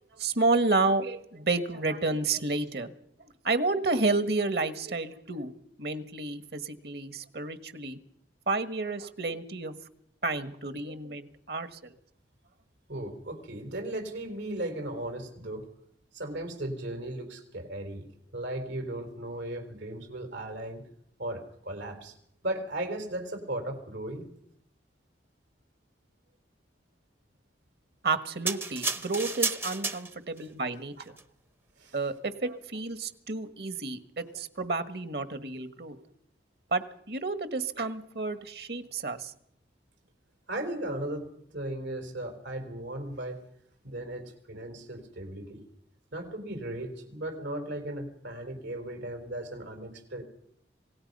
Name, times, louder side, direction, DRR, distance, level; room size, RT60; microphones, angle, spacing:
voice 1, 0.0-2.9 3.2-5.5 5.8-8.0 8.5-9.7 10.2-11.9 28.0-30.9 31.9-36.0 36.7-39.3, right 3 dB, 60° right, 11 dB, 1.5 m, -30 dB
voice 2, 12.9-15.6 16.1-18.1 18.3-20.8 21.2-22.1 22.4-24.3 31.8-32.0 40.5-43.4 43.8-45.6 46.1-50.2, right 1 dB, 90° right, 5 dB, 4.1 m, -36 dB
sound 1, 28.5-30.4 31.1-31.2, right 3 dB, 10° right, 0.7 m, -32 dB
26.5 x 18.0 x 5.4 m, 0.72 s
head